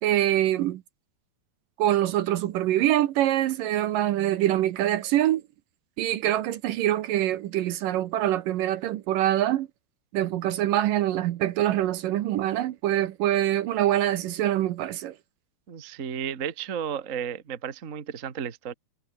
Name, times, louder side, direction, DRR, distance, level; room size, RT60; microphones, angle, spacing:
voice 1, 0.0-0.8 1.8-5.4 6.0-9.7 10.1-15.1, right 13 dB, 70° right, 2.4 m, -24 dB
voice 2, 15.7-18.7, right 8 dB, 50° right, 0.9 m, -33 dB
omnidirectional pair, 4.4 m